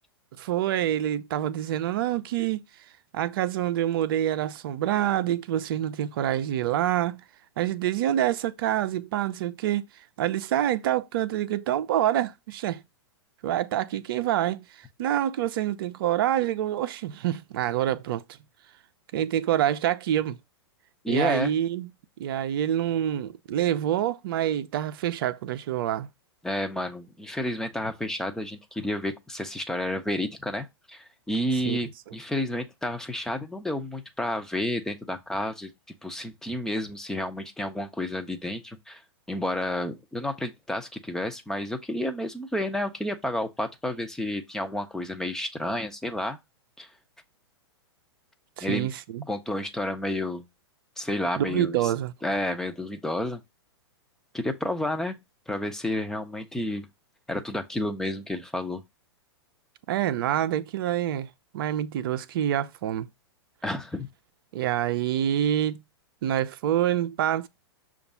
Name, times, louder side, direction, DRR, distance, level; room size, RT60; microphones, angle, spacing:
voice 1, 0.4-2.6 3.1-7.2 7.6-9.8 10.2-12.8 13.4-18.2 19.1-20.4 21.1-21.9 22.2-26.1 31.7-31.8 48.6-49.3 51.4-52.1 59.9-61.3 61.5-63.1 64.5-65.8 66.2-67.5, right 11 dB, 55° right, 0.6 m, -26 dB
voice 2, 21.0-21.5 26.4-35.7 36.0-39.0 39.3-46.4 46.8-46.9 48.6-48.9 49.3-50.4 51.0-51.8 52.2-53.4 54.3-55.2 55.5-56.9 57.3-58.8 63.6-64.1, left 1 dB, 5° left, 0.8 m, -30 dB
6.8 x 2.5 x 5.4 m
hypercardioid pair, 110°, 14 cm